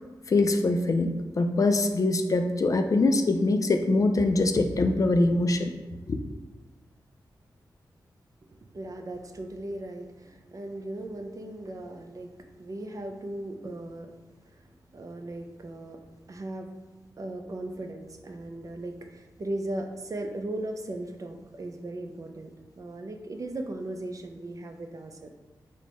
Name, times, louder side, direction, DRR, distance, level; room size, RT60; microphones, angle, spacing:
voice 1, 0.3-5.7 6.1-6.2, left 2 dB, 45° left, 6 dB, 0.3 m, -23 dB
voice 2, 8.5-12.3 12.6-14.1 14.4-14.7 14.9-16.0 16.3-16.7 17.2-25.3, right 1 dB, 45° right, 5 dB, 0.4 m, -37 dB
4.4 x 2.1 x 4.1 m, 1.2 s
wide cardioid pair, 80°, 8 cm